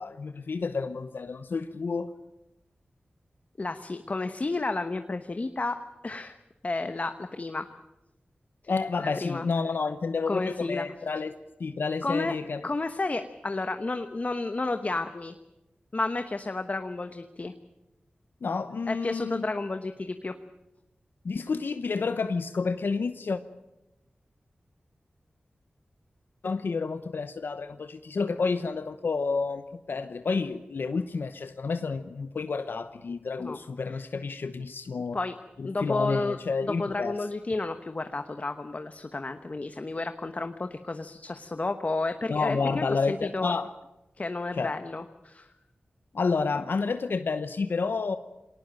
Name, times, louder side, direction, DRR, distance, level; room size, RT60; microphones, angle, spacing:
voice 1, 0.0-2.1 8.7-11.3 11.6-12.7 18.4-19.4 21.2-23.4 26.4-35.2 35.6-37.2 42.3-43.7 44.5-44.7 46.1-48.2, left 4 dB, 80° left, 10 dB, 0.8 m, -30 dB
voice 2, 3.6-6.4 6.6-7.6 9.0-9.4 10.3-10.9 12.0-12.3 12.6-15.3 15.9-17.5 18.9-20.4 33.4-33.6 33.9-34.0 35.1-35.3 35.6-43.5 44.2-45.5, left 3 dB, 45° left, 8 dB, 1.1 m, -31 dB
21.0 x 18.5 x 8.9 m, 0.98 s
cardioid pair, 50°, 4 cm